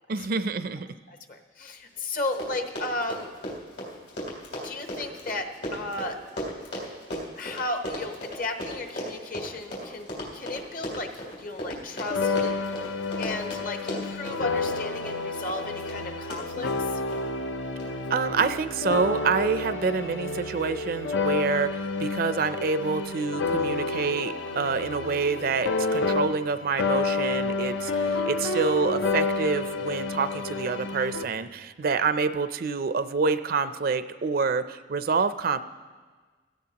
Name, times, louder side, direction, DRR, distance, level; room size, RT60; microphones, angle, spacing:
voice 1, 0.1-0.9 18.1-21.7 22.0-35.6, right 4 dB, 55° right, 12 dB, 0.4 m, -27 dB
voice 2, 1.1-3.3 4.6-6.2 7.4-10.1 10.3-17.0 28.0-28.3, left 2 dB, 50° left, 5 dB, 1.0 m, -34 dB
Run, 1.9-2.0 2.2-17.2 17.8-18.1 18.4-18.5, equal, 65° left, 3.4 m, -36 dB
sound 1, 12.1-26.5 26.8-31.2, left 3 dB, 85° left, 0.7 m, -29 dB
Wind instrument woodwind instrument, 23.7-27.5, left 3 dB, 30° left, 0.7 m, -46 dB
16.5 x 15.0 x 2.9 m, 1.4 s
head